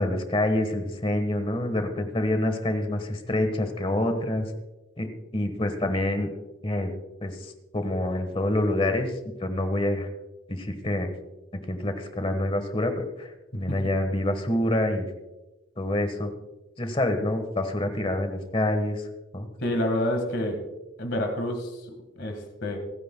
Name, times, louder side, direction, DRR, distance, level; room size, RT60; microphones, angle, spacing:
voice 1, 0.0-4.5 5.0-5.1 5.3-6.3 6.6-6.9 7.2-7.4 7.7-9.1 9.4-10.1 10.5-11.1 11.5-15.1 15.8-16.3 16.8-19.0 19.3-19.5, left 1 dB, 25° left, 7 dB, 1.4 m, -26 dB
voice 2, 19.6-20.6 21.0-21.8 22.2-22.8, left 1 dB, 60° left, 5 dB, 1.8 m, -28 dB
27.5 x 9.5 x 2.3 m, 1.0 s
head